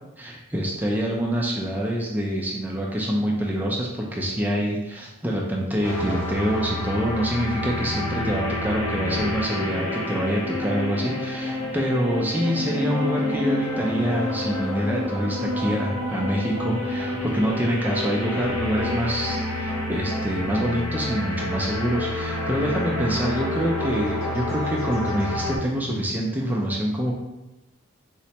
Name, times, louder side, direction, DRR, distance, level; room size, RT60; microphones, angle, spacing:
voice 1, 0.2-27.1, equal, 10° right, -2 dB, 0.3 m, -26 dB
sound 1, 5.8-25.6, left 1 dB, 75° left, 0.7 m, -28 dB
4.2 x 2.0 x 2.8 m, 0.98 s
head